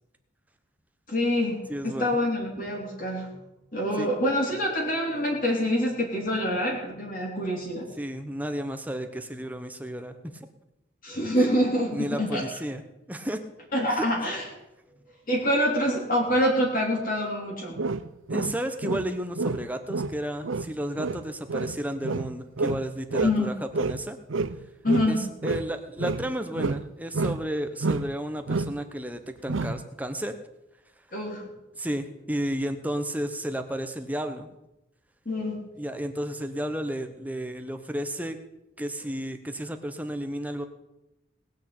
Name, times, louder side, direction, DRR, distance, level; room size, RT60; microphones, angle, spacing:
voice 1, 1.1-3.3 3.7-7.9 11.0-12.4 13.7-14.4 15.3-17.8 23.2-23.5 24.8-25.3 31.1-31.5 35.3-35.7, equal, 45° left, -3 dB, 3.6 m, -26 dB
voice 2, 1.7-2.2 4.0-4.1 8.0-10.5 11.4-11.5 11.9-12.8 13.1-13.4 13.9-14.0 18.3-24.2 25.1-30.4 31.7-34.5 35.8-38.4 38.8-40.6, equal, 10° right, 7 dB, 1.1 m, -32 dB
sound 1, 17.8-19.1 19.3-23.4 23.7-25.7 26.0-27.5 27.8-28.2 28.5-28.8 29.5-29.8, right 3 dB, 80° right, 0.7 m, -29 dB
19.0 x 6.4 x 8.6 m, 0.92 s
head